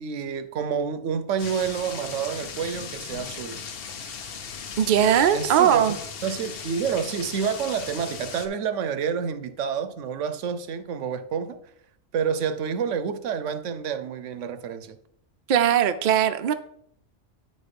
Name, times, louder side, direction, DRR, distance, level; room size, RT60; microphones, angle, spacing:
voice 1, 0.0-3.6 5.3-5.9 6.2-11.6 12.1-15.0, right 7 dB, 75° right, 1.0 m, -28 dB
sound 1, 1.4-8.5, left 6 dB, 55° left, 0.9 m, -37 dB
voice 2, 4.8-6.0 15.5-16.5, right 9 dB, 55° right, 0.6 m, -20 dB
9.1 x 4.3 x 5.1 m
omnidirectional pair, 1.3 m